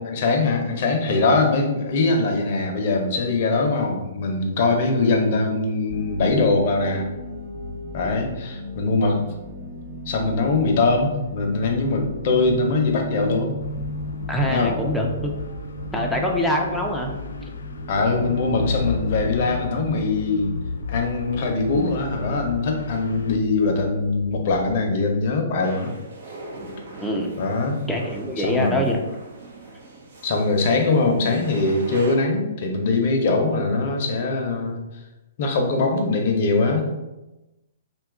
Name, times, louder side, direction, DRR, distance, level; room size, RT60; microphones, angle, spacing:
voice 1, 0.0-7.1 7.9-9.2 10.1-13.6 14.5-14.8 17.9-20.5 20.9-25.9 27.4-27.8 28.4-28.8 30.2-34.8 35.4-36.9, left 3 dB, 50° left, 3 dB, 0.6 m, -22 dB
sound 1, 5.9-25.2, equal, 20° right, 1.0 m, -35 dB
sound 2, 13.6-23.4, left 4 dB, 85° left, 0.3 m, -33 dB
voice 2, 14.3-15.3 15.9-17.1 27.0-27.3 27.9-29.0, left 1 dB, 5° left, -1 dB, 0.4 m, -24 dB
sound 3, 25.6-32.2, right 2 dB, 70° right, 0.8 m, -40 dB
2.7 x 2.3 x 3.6 m, 1.0 s
hypercardioid pair, 150°, 0 cm